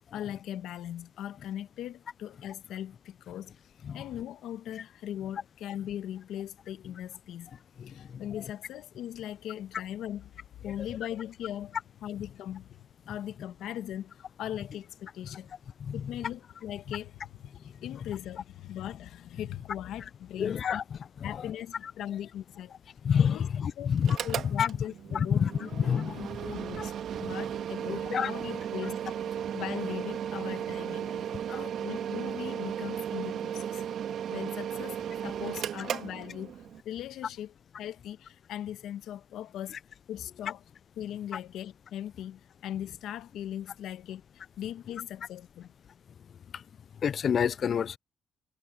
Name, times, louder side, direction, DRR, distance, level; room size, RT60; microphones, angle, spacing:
voice 1, 0.1-7.5 7.9-10.3 10.6-15.5 15.9-20.8 21.2-22.7 23.3-23.4 23.8-23.9 24.2-25.7 26.2-33.8 34.3-39.8 40.1-40.6 41.0-44.2 44.6-45.7, left 11 dB, 80° left, 1.3 m, -39 dB
voice 2, 7.8-8.2 15.8-16.0 20.4-20.8 21.4-21.5 23.0-24.2 24.5-24.7 25.1-25.5 25.8-26.2 26.8-26.9 27.9-28.3 31.5-31.7 46.5-46.6 47.0-48.0, left 7 dB, 55° left, 0.3 m, -28 dB
Mechanical fan, 24.0-36.8, right 9 dB, 70° right, 1.9 m, -35 dB
cardioid pair, 90°, 0 cm